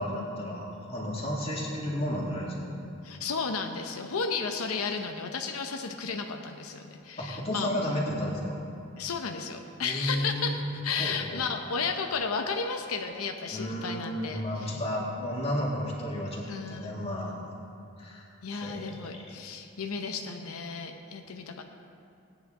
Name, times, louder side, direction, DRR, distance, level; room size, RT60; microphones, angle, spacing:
voice 1, 0.0-2.7 7.2-8.5 9.8-10.7 11.0-11.4 13.5-17.4 18.0-18.2 18.5-19.3, equal, 25° left, -4 dB, 2.0 m, -32 dB
voice 2, 3.0-7.7 9.0-14.8 16.4-17.4 18.4-21.6, left 5 dB, 90° left, 4 dB, 0.7 m, -33 dB
17.0 x 9.4 x 3.7 m, 2.7 s
head